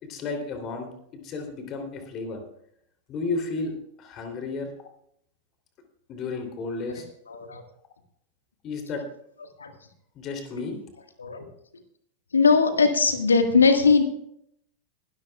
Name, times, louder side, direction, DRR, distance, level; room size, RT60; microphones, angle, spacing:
voice 1, 0.0-2.4 3.1-4.9 6.1-7.1 8.6-9.0 10.1-10.8, left 3 dB, 35° left, 4 dB, 3.3 m, -33 dB
voice 2, 7.3-7.6 9.6-9.7 11.2-11.4 12.3-14.0, left 4 dB, 75° left, 6 dB, 1.7 m, -19 dB
21.5 x 13.0 x 2.4 m, 0.71 s
figure-of-eight pair, 90°, 0 cm